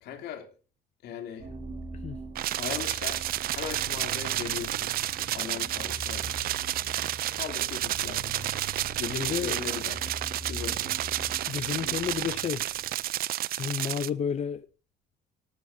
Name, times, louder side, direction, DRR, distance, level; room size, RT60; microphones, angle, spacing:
voice 1, 0.0-0.5 1.0-1.5 2.6-3.3 3.5-4.9 5.3-6.5 7.3-8.5 9.0-10.0 10.4-10.9, left 8 dB, 80° left, 3.0 m, -38 dB
sound 1, 1.4-13.3, right 2 dB, 45° right, 5.7 m, -42 dB
sound 2, 2.4-14.1, right 14 dB, 60° right, 0.5 m, -31 dB
voice 2, 9.1-9.6 11.5-12.6 13.5-14.7, left 8 dB, 40° left, 0.6 m, -31 dB
19.0 x 11.0 x 2.8 m
cardioid pair, 110°, 17 cm